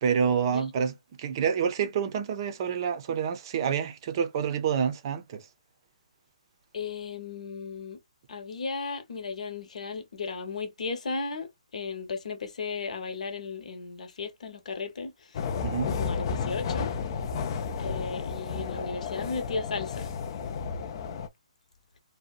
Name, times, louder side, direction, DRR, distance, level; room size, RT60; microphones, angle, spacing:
voice 1, 0.0-5.5 15.6-16.0, right 7 dB, 35° right, 0.6 m, -28 dB
voice 2, 6.7-8.0 8.3-15.4 15.9-16.9 17.8-20.1, left 4 dB, 70° left, 0.9 m, -35 dB
sound 1, 15.3-21.3, left 5 dB, 40° left, 0.4 m, -32 dB
2.7 x 2.2 x 2.4 m
hypercardioid pair, 160°, 4 cm